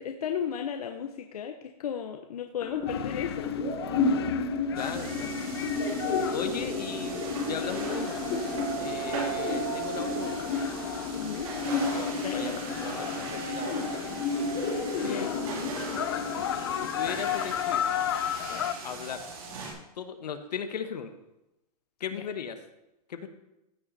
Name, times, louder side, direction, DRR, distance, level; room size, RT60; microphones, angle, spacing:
voice 1, 0.0-3.5 11.1-11.5 12.2-12.7 15.0-15.4 22.1-22.2, left 8 dB, 65° left, 5 dB, 0.9 m, -35 dB
sound 1, 2.6-18.6, left 3 dB, 25° left, 1.3 m, -32 dB
sound 2, 2.9-18.7, left 10 dB, 40° left, 0.4 m, -35 dB
voice 2, 4.7-5.4 6.3-8.5 8.8-10.5 11.7-13.8 15.0-15.9 16.8-17.9 18.5-19.2 20.0-21.1 22.0-22.6 23.1-23.3, left 7 dB, 80° left, 8 dB, 1.3 m, -37 dB
sound 3, 4.7-19.7, right 5 dB, 60° right, 3.2 m, -39 dB
15.0 x 6.2 x 4.1 m, 0.92 s
hypercardioid pair, 175°, 21 cm